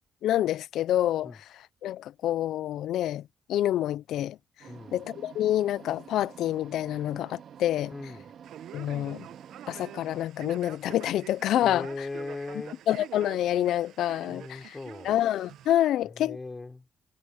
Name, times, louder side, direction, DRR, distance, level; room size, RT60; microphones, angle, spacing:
voice 1, 0.2-1.3 1.8-3.2 3.5-4.4 4.9-7.9 8.7-9.3 9.7-12.1 12.9-14.8 15.0-16.4, left 12 dB, 80° left, 0.4 m, -27 dB
sound 1, 4.6-10.3, right 8 dB, 60° right, 2.5 m, -49 dB
voice 2, 4.7-5.0 7.9-8.3 11.6-12.8 14.3-15.1 16.0-16.9, left 3 dB, 25° left, 4.0 m, -39 dB
Male speech man speaking, 8.4-15.7, right 11 dB, 80° right, 0.9 m, -46 dB
cardioid pair, 90°, 0 cm